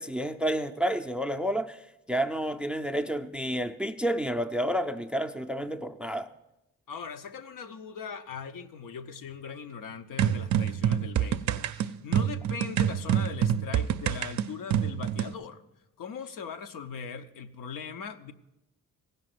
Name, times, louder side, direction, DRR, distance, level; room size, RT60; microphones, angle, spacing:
voice 1, 0.0-6.3, equal, 5° right, 0.4 m, -30 dB
voice 2, 6.9-15.6 16.0-18.3, left 6 dB, 75° left, 0.8 m, -40 dB
sound 1, 10.2-15.3, right 10 dB, 60° right, 0.5 m, -27 dB
15.5 x 5.5 x 7.7 m
cardioid pair, 110°, 33 cm